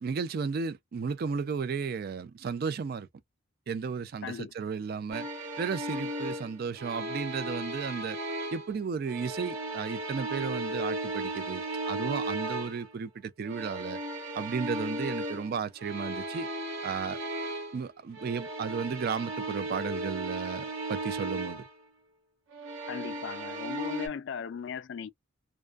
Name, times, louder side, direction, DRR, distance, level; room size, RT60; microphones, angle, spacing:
voice 1, 0.0-3.1 3.7-5.3 5.6-8.2 8.5-13.1 13.4-14.0 14.4-16.5 16.8-17.2 17.7-21.6, right 5 dB, 50° right, 0.3 m, -34 dB
voice 2, 4.2-4.5 22.9-25.1, left 6 dB, 60° left, 0.3 m, -37 dB
sound 1, 5.1-8.7 9.1-12.9 13.4-17.8 18.1-21.7 22.5-24.1, right 1 dB, 75° right, 1.0 m, -36 dB
2.4 x 2.2 x 2.3 m
head